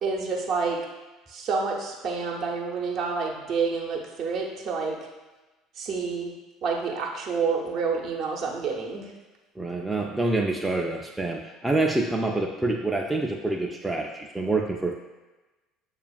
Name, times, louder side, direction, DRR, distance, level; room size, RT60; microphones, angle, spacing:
voice 1, 0.0-0.8 1.3-5.0 5.7-6.3 6.6-9.1, right 5 dB, 50° right, -1 dB, 0.7 m, -28 dB
voice 2, 9.6-14.9, right 2 dB, 10° right, 0 dB, 0.4 m, -27 dB
6.6 x 2.4 x 2.3 m, 1.2 s
figure-of-eight pair, 60°, 0 cm